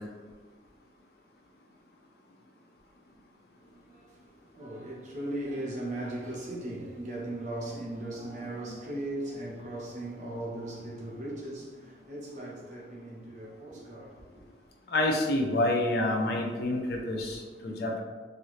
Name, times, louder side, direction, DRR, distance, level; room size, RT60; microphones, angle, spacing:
voice 1, 3.6-14.5, right 1 dB, 40° right, 0.8 m, -38 dB
voice 2, 14.9-18.0, left 1 dB, 60° left, 0.5 m, -28 dB
2.7 x 2.6 x 3.1 m
head